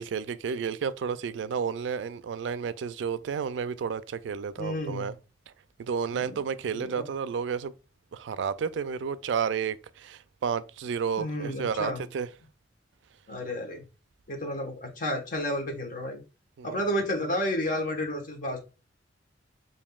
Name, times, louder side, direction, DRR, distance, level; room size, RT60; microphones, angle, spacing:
voice 1, 0.0-5.1 5.8-7.7 8.1-12.3 16.6-16.8, right 6 dB, 70° right, 0.3 m, -31 dB
voice 2, 4.6-5.1 6.1-6.4 6.7-7.0 11.2-12.0 13.3-13.8 14.3-16.2 16.6-18.6, left 1 dB, 45° left, 1.2 m, -31 dB
7.1 x 2.6 x 2.3 m
head